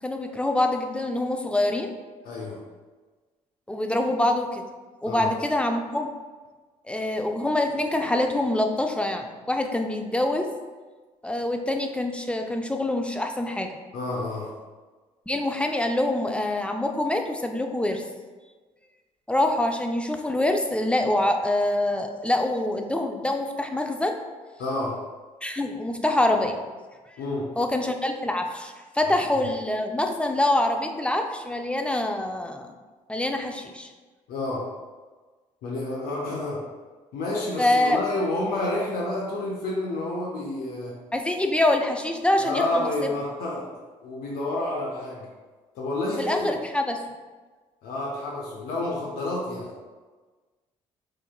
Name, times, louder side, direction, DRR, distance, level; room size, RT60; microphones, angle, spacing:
voice 1, 0.0-1.9 3.7-4.6 5.0-6.1 6.9-10.5 11.2-13.8 15.3-18.0 19.3-24.2 25.4-26.6 27.6-32.7 33.1-33.9 37.6-38.0 41.1-43.1 46.2-47.0, left 1 dB, 5° left, 4 dB, 0.4 m, -25 dB
voice 2, 2.2-2.6 5.1-5.3 13.9-14.5 24.6-25.0 27.2-27.5 29.1-29.5 34.3-34.7 35.6-36.6 37.1-41.0 42.4-43.6 44.0-45.3 45.7-46.5 47.8-49.7, left 2 dB, 70° left, -2 dB, 0.6 m, -29 dB
4.6 x 2.9 x 2.3 m, 1.3 s
hypercardioid pair, 50°, 16 cm